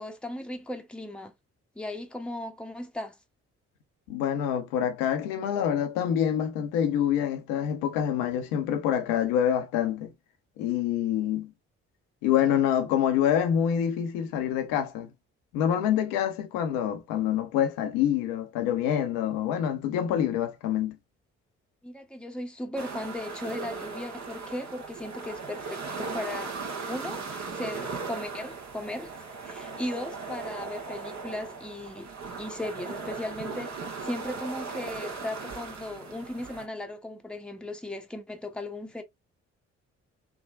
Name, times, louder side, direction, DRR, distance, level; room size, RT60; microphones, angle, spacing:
voice 1, 0.0-1.3 1.8-3.2 21.8-26.5 26.9-27.2 27.5-29.1 29.4-32.1 32.4-33.8 34.0-39.0, left 1 dB, 5° left, 0.8 m, -37 dB
voice 2, 4.1-10.1 10.6-11.5 12.2-15.1 15.5-21.0, left 9 dB, 75° left, 0.7 m, -26 dB
sound 1, 22.8-36.7, right 4 dB, 50° right, 1.1 m, -38 dB
3.5 x 2.1 x 2.4 m
hypercardioid pair, 40°, 34 cm